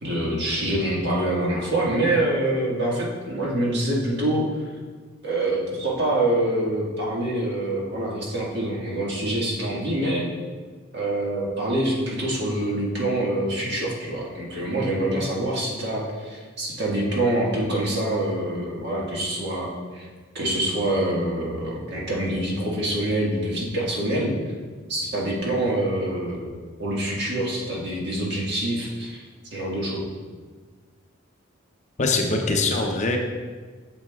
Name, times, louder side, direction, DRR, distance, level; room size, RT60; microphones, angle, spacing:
voice 1, 0.0-4.5 5.2-10.3 10.9-20.1 20.3-24.3 24.9-26.5 26.8-29.2 29.5-30.0, right 1 dB, 55° right, -4 dB, 1.6 m, -25 dB
voice 2, 32.0-33.2, left 3 dB, 35° left, 2 dB, 0.6 m, -22 dB
9.1 x 6.8 x 2.3 m, 1.5 s
head